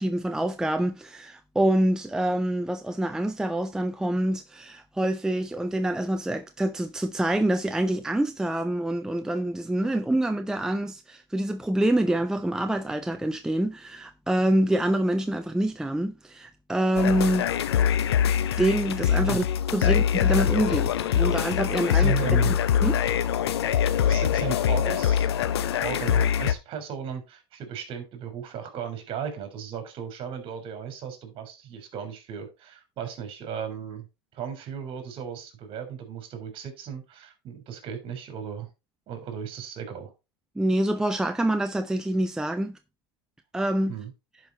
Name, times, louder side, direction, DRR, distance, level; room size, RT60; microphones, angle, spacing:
voice 1, 0.0-17.5 18.6-19.4 19.7-22.1 22.5-23.0 40.6-42.8 43.5-43.9, right 1 dB, 5° right, 0.6 m, -26 dB
sound 1, 17.0-26.5, left 9 dB, 90° left, 0.8 m, -23 dB
voice 2, 21.9-22.5 23.8-25.3 25.8-34.1 34.3-38.7 39.1-40.1 43.9-44.1, right 8 dB, 40° right, 3.7 m, -36 dB
10.5 x 5.4 x 4.0 m
hypercardioid pair, 110°, 13 cm